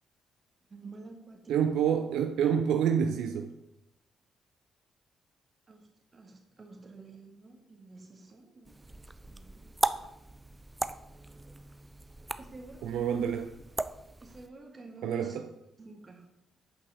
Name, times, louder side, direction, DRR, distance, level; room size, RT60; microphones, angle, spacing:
voice 1, 0.7-1.6 5.7-5.9 6.1-9.0 9.3-9.7 12.4-13.3 14.2-15.4 15.8-16.3, right 3 dB, 40° right, 2 dB, 1.8 m, -48 dB
voice 2, 1.5-3.5 12.8-13.5 15.0-15.5, right 8 dB, 80° right, 7 dB, 0.4 m, -28 dB
sound 1, 8.6-14.5, right 2 dB, 20° right, 0.5 m, -37 dB
8.0 x 5.5 x 4.0 m, 0.85 s
supercardioid pair, 60°, 0 cm